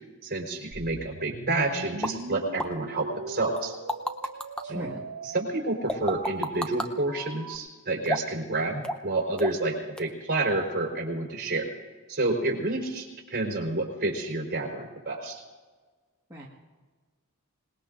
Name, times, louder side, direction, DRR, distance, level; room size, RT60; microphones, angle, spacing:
voice 1, 0.2-3.7 4.7-4.9 5.3-11.7 12.1-15.4, right 2 dB, 45° right, -1 dB, 4.3 m, -29 dB
sound 1, 0.7-7.6, right 3 dB, 85° right, 1.0 m, -41 dB
sound 2, 2.0-2.1 2.6-2.7 3.6-4.6 5.9-6.9 8.1-8.4 8.8-9.1 9.4-9.7 10.0-10.1, equal, 5° left, 0.7 m, -30 dB
voice 2, 4.6-5.0 16.3-16.5, equal, 15° right, -6 dB, 1.7 m, -38 dB
26.5 x 20.0 x 2.6 m, 1.4 s
head